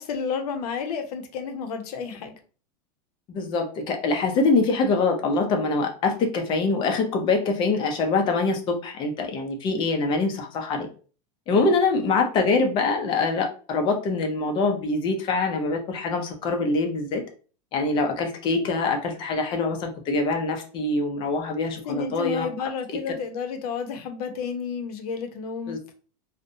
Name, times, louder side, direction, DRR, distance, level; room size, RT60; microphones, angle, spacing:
voice 1, 0.0-2.4 11.5-11.7 21.9-25.8, left 6 dB, 80° left, 7 dB, 0.6 m, -31 dB
voice 2, 3.3-10.9 11.5-17.2 17.7-22.5 25.7-25.9, left 3 dB, 25° left, 4 dB, 0.4 m, -24 dB
2.6 x 2.1 x 2.5 m, 0.38 s
supercardioid pair, 165°, 20 cm